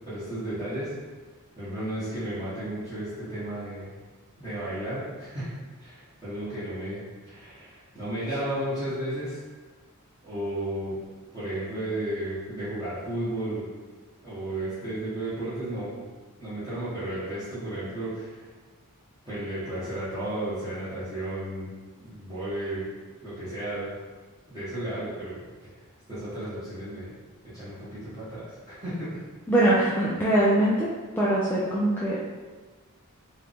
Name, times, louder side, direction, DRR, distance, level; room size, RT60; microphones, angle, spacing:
voice 1, 0.1-0.9 1.6-3.9 4.4-5.5 5.8-9.4 10.2-11.0 11.3-13.7 14.2-15.9 16.4-18.5 19.3-21.7 22.0-22.9 23.2-23.9 24.5-25.4 26.1-27.1 27.5-29.2, right 1 dB, 15° right, -15 dB, 1.3 m, -33 dB
voice 2, 29.5-30.9 31.2-32.4, right 1 dB, 10° left, -8 dB, 0.4 m, -23 dB
4.6 x 2.6 x 3.5 m, 1.3 s
head